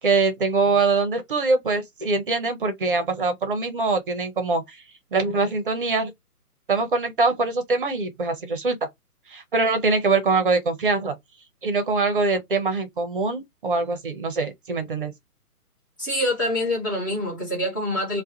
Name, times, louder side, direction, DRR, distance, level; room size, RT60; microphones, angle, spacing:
voice 1, 0.0-4.8 5.1-6.1 6.7-8.8 9.3-11.1 11.6-15.1, right 3 dB, 35° right, 0.7 m, -23 dB
voice 2, 16.0-18.2, left 1 dB, 15° left, 0.6 m, -25 dB
2.3 x 2.3 x 2.6 m
figure-of-eight pair, 135°, 46 cm